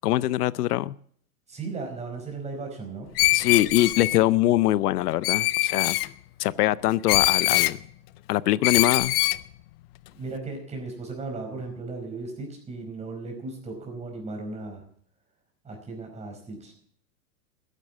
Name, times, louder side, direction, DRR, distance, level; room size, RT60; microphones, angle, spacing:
voice 1, 0.0-0.9 3.3-6.0 6.4-7.8 8.3-9.1, left 15 dB, 85° left, 20 dB, 0.6 m, -23 dB
voice 2, 1.5-3.1 3.3-3.8 4.1-4.5 10.1-14.8 15.6-16.7, right 3 dB, 15° right, 2 dB, 5.0 m, -36 dB
Screech, 3.2-4.2 5.2-6.1 7.1-7.8 8.6-9.4, left 18 dB, 40° left, 0.5 m, -23 dB
14.0 x 10.5 x 7.4 m, 0.62 s
supercardioid pair, 145°, 45 cm